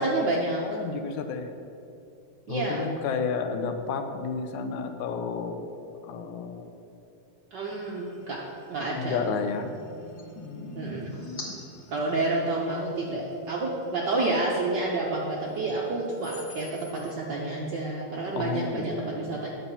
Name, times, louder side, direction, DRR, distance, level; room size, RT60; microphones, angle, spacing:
voice 1, 0.0-0.8 2.5-2.9 7.5-8.4 8.7-9.2 10.7-11.2 11.9-19.5, right 2 dB, 80° right, -3 dB, 0.9 m, -29 dB
voice 2, 0.6-1.5 2.5-5.6 6.0-6.7 8.9-9.7 10.4-11.6 18.4-19.4, left 5 dB, 90° left, 7 dB, 2.2 m, -32 dB
sound 1, 7.6-17.1, right 1 dB, 50° left, 1.7 m, -47 dB
9.8 x 7.0 x 5.5 m, 2.7 s
omnidirectional pair, 3.3 m